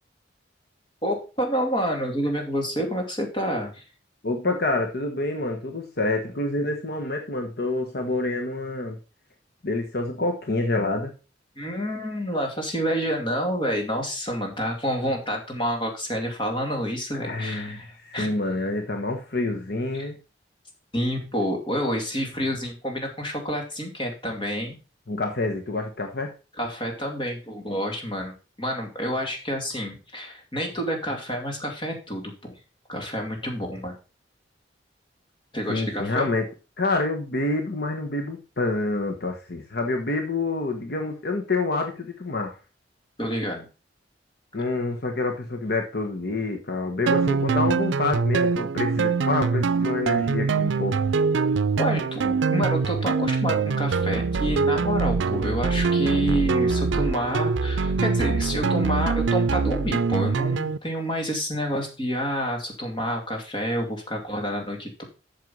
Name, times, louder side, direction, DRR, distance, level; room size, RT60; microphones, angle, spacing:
voice 1, 1.0-3.8 11.6-17.9 18.1-18.4 19.9-20.1 20.9-24.8 26.6-32.5 32.9-33.9 35.5-36.3 43.2-43.7 51.8-65.0, equal, 25° left, 2 dB, 2.5 m, -28 dB
voice 2, 4.2-9.0 9.6-11.1 17.2-20.2 25.1-26.3 35.7-36.4 36.8-42.5 44.5-51.0, left 2 dB, 60° left, 3 dB, 1.3 m, -27 dB
sound 1, 47.1-60.8, right 4 dB, 85° right, 0.5 m, -23 dB
7.9 x 6.7 x 5.4 m, 0.32 s
head